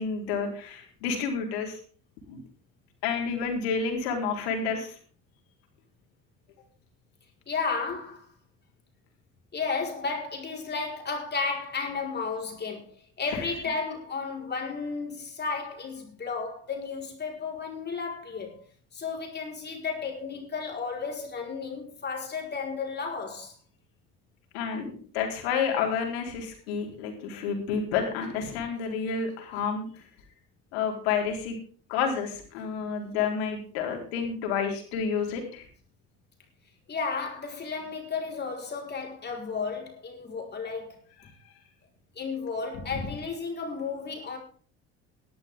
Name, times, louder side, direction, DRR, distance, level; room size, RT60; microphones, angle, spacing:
voice 1, 0.0-1.8 2.3-2.4 3.0-5.0 13.3-13.4 24.5-29.9 30.7-31.6 31.9-35.6, left 6 dB, 90° left, 4.0 m, -30 dB
voice 2, 7.5-8.3 9.5-18.6 18.9-23.5 36.9-41.0 42.1-44.4, left 4 dB, 35° left, 4.8 m, -33 dB
17.0 x 12.0 x 3.7 m
supercardioid pair, 90°, 31 cm